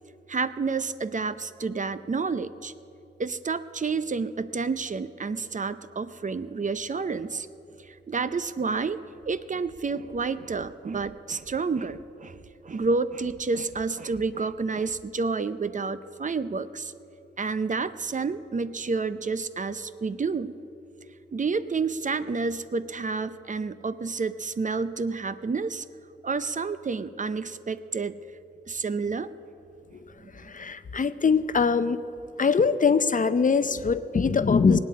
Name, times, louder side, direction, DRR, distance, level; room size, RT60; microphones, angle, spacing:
voice 1, 0.3-2.7 3.2-7.5 7.8-9.0 9.3-12.4 12.6-16.9 17.4-20.5 21.3-25.8 26.2-28.1 28.7-29.3 30.4-30.5, right 4 dB, 40° right, 13 dB, 0.5 m, -29 dB
voice 2, 30.3-32.0 32.4-34.8, left 5 dB, 45° left, 13 dB, 0.6 m, -22 dB
19.5 x 8.6 x 8.4 m, 2.9 s
wide cardioid pair, 85°, 19 cm